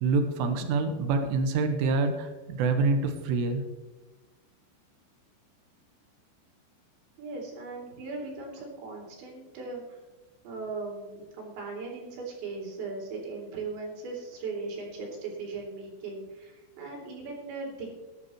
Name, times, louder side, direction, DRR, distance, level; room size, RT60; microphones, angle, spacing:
voice 1, 0.0-3.6, right 3 dB, 85° right, 6 dB, 3.7 m, -26 dB
voice 2, 7.2-10.0 10.4-17.9, right 3 dB, 70° right, -1 dB, 5.2 m, -38 dB
16.0 x 11.5 x 3.1 m, 1.1 s
omnidirectional pair, 5.6 m